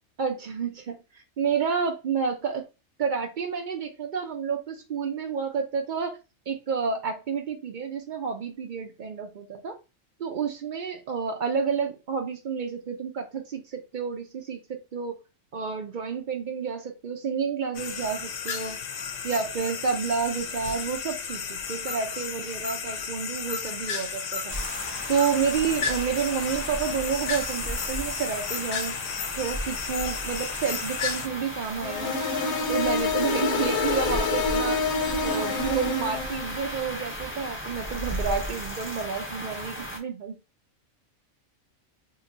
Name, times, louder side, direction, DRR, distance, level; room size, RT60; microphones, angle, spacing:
voice 1, 0.2-2.6 3.0-6.2 6.5-9.8 10.2-15.2 15.5-18.8 19.2-24.5 25.1-29.0 29.4-32.2 32.7-34.8 35.2-40.4, right 6 dB, 60° right, 0.5 m, -30 dB
sound 1, 17.7-31.3, left 6 dB, 65° left, 0.8 m, -33 dB
sound 2, 24.5-40.0, equal, 20° left, 0.4 m, -35 dB
sound 3, 31.8-36.6, left 4 dB, 90° left, 1.1 m, -27 dB
2.9 x 2.3 x 3.8 m
omnidirectional pair, 1.4 m